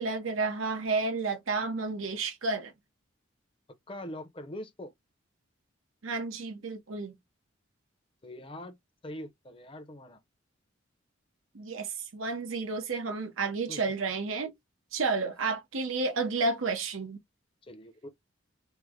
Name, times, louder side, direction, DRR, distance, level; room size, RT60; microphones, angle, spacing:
voice 1, 0.0-2.7 6.0-7.2 11.5-14.5 14.9-17.2, right 3 dB, 90° right, 0.8 m, -31 dB
voice 2, 3.9-4.9 8.2-8.8 9.0-10.2 13.7-14.0 14.4-14.5 17.6-18.1, left 1 dB, 25° left, 0.6 m, -43 dB
3.3 x 2.1 x 3.6 m
head